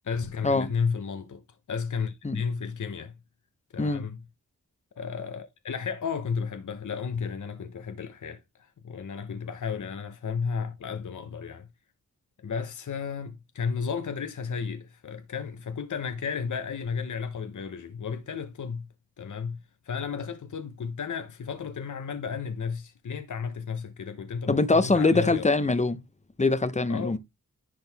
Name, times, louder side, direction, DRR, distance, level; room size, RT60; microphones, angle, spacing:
voice 1, 0.0-3.1 3.7-4.2 5.0-11.7 12.4-18.9 19.2-25.5 26.9-27.2, left 6 dB, 60° left, 0.9 m, -33 dB
voice 2, 24.5-26.0 26.4-27.2, left 3 dB, 20° left, 0.9 m, -23 dB
10.5 x 4.0 x 3.4 m
wide cardioid pair, 70°, 33 cm